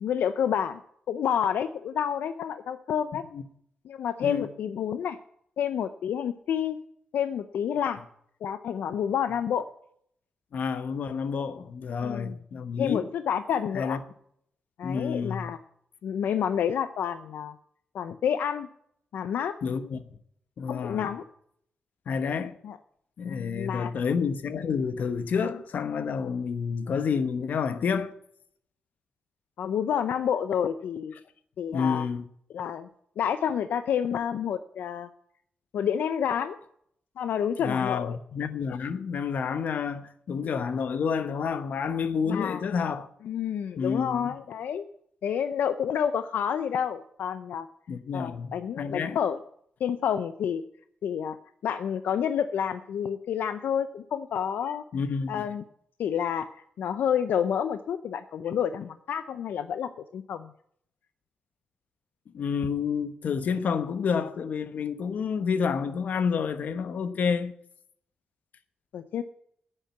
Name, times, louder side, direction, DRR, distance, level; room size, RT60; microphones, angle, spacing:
voice 1, 0.0-0.8 1.1-3.2 3.8-5.2 5.6-6.8 7.1-8.0 8.4-9.7 12.0-12.4 12.8-14.0 14.8-15.6 16.0-17.5 17.9-18.7 19.1-19.5 20.7-21.2 22.6-22.8 23.2-23.9 29.6-31.1 31.6-32.1 32.5-32.9 33.2-35.1 35.7-36.6 37.2-38.2 42.3-42.6 43.2-44.9 45.2-47.7 48.1-49.4 49.8-50.6 51.0-51.4 51.6-54.8 55.3-55.6 56.0-60.5 68.9-69.2, left 8 dB, 85° left, 0.6 m, -29 dB
voice 2, 10.5-13.1 13.7-14.0 14.8-15.5 19.6-20.1 20.6-21.1 22.1-22.6 23.2-28.1 31.7-32.2 37.6-43.1 43.8-44.4 47.9-49.2 54.9-55.5 62.3-67.5, left 6 dB, 65° left, 1.0 m, -29 dB
10.5 x 8.9 x 8.1 m
wide cardioid pair, 125°, 3 cm